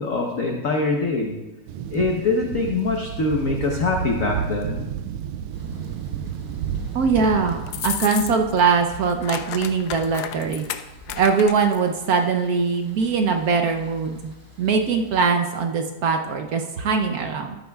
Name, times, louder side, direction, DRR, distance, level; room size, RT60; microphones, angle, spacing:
voice 1, 0.0-1.3 1.9-4.9, left 3 dB, 50° left, 0 dB, 1.1 m, -23 dB
sound 1, 1.7-7.9, right 9 dB, 85° right, 1.5 m, -31 dB
Thunder, 5.5-15.3, equal, 15° right, 0.9 m, -44 dB
voice 2, 6.9-10.7 11.2-14.3 14.6-17.6, right 5 dB, 65° right, 4 dB, 0.9 m, -21 dB
sound 2, 7.7-8.6 8.9-11.8, left 11 dB, 90° left, 0.8 m, -32 dB
14.0 x 12.0 x 2.3 m, 1.1 s
omnidirectional pair, 2.3 m